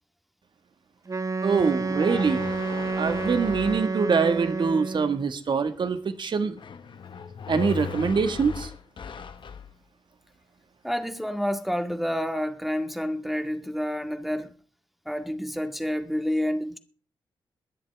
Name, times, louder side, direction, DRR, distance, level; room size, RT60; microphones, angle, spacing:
Wind instrument woodwind instrument, 1.1-5.2, right 4 dB, 35° right, 1.0 m, -29 dB
voice 1, 1.4-2.5 3.0-6.6 7.5-8.7, right 5 dB, 60° right, 1.8 m, -24 dB
sound 1, 1.6-3.9 6.6-9.7, left 6 dB, 65° left, 1.1 m, -37 dB
voice 2, 10.8-14.5 15.1-16.8, equal, ahead, 2.0 m, -29 dB
22.5 x 7.8 x 3.6 m
cardioid pair, 55°, 9 cm